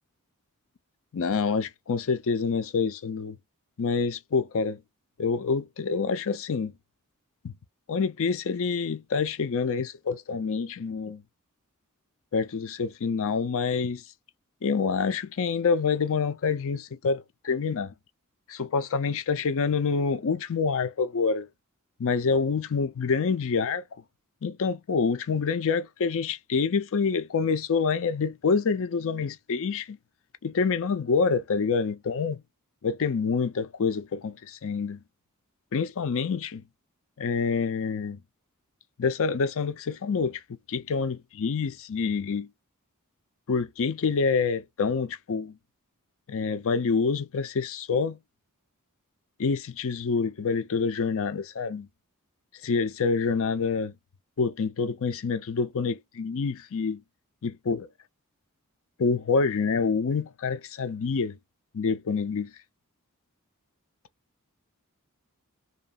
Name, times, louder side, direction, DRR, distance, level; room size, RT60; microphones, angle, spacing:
voice 1, 1.1-3.4 3.8-4.8 5.2-6.7 7.4-7.5 7.9-11.2 12.3-14.0 14.6-17.9 18.5-21.5 22.0-23.8 24.4-30.0 30.4-32.4 32.8-35.0 35.7-36.6 37.2-38.2 39.0-40.4 40.7-42.5 43.5-45.6 46.3-48.2 49.4-51.9 52.6-53.9 54.4-57.0 57.4-57.9 59.0-61.4 61.7-62.5, left 5 dB, 65° left, 0.5 m, -27 dB
2.8 x 2.4 x 2.3 m
head